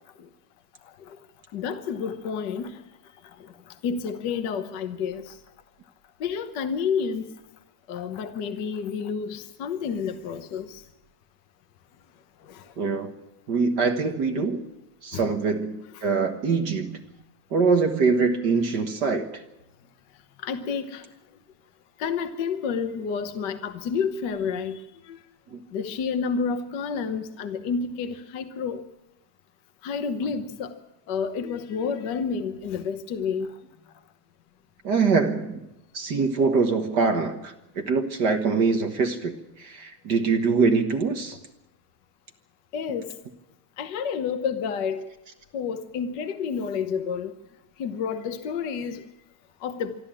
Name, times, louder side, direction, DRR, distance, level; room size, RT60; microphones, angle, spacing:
voice 1, 1.5-2.8 3.8-5.3 6.2-7.2 7.9-10.8 12.5-12.6 15.1-15.3 20.4-21.0 22.0-24.8 25.1-25.2 25.7-28.8 29.8-30.7 31.1-33.5 42.7-43.0 43.8-45.1 45.5-47.3 47.8-49.0 49.6-50.0, left 6 dB, 65° left, 1.1 m, -29 dB
voice 2, 12.8-13.1 13.5-14.7 15.0-17.0 17.5-19.4 25.5-25.6 34.8-35.6 35.9-41.4, right 4 dB, 50° right, 1.4 m, -24 dB
25.0 x 13.0 x 8.8 m
omnidirectional pair, 3.4 m